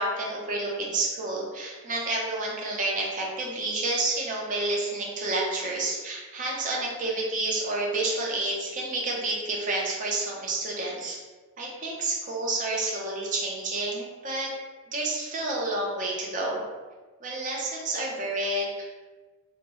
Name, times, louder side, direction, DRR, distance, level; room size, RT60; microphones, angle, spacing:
voice 1, 0.0-11.2 11.6-14.5 14.9-16.6 17.2-18.9, right 2 dB, 35° right, -2 dB, 0.5 m, -29 dB
2.7 x 2.0 x 3.0 m, 1.3 s
head